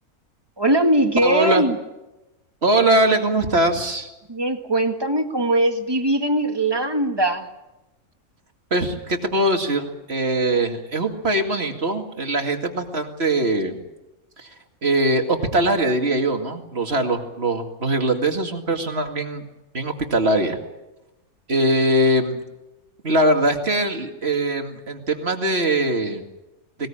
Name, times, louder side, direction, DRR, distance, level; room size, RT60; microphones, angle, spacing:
voice 1, 0.6-1.8 4.3-7.5, right 1 dB, 15° right, 6 dB, 1.8 m, -20 dB
voice 2, 1.2-1.7 2.6-4.1 8.7-13.8 14.4-14.5 14.8-19.5 19.7-20.6 21.5-22.4 23.0-26.2, right 1 dB, 45° right, 5 dB, 2.4 m, -21 dB
20.0 x 20.0 x 8.8 m, 0.99 s
omnidirectional pair, 1.5 m